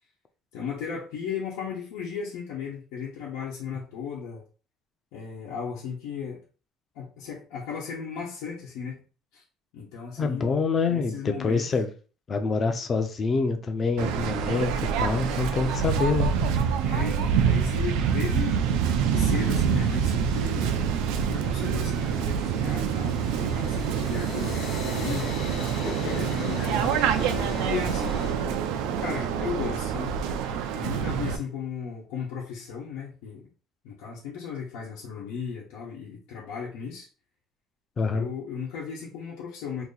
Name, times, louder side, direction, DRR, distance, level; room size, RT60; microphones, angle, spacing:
voice 1, 0.5-4.4 5.1-6.4 6.9-9.0 9.3-9.4 9.7-11.7 16.8-20.7 21.2-25.6 25.9-30.1 30.7-33.5 33.8-37.1 38.1-39.8, left 6 dB, 90° left, 1.1 m, -36 dB
voice 2, 10.2-11.9 12.3-16.3 38.0-38.3, left 4 dB, 25° left, 0.5 m, -26 dB
Waves surf, 14.0-31.4, right 7 dB, 90° right, 0.5 m, -26 dB
sound 1, 14.2-23.1, right 4 dB, 35° right, 0.5 m, -44 dB
sound 2, 19.5-28.3, left 4 dB, 50° left, 1.0 m, -41 dB
2.9 x 2.7 x 3.9 m
cardioid pair, 170°, 0 cm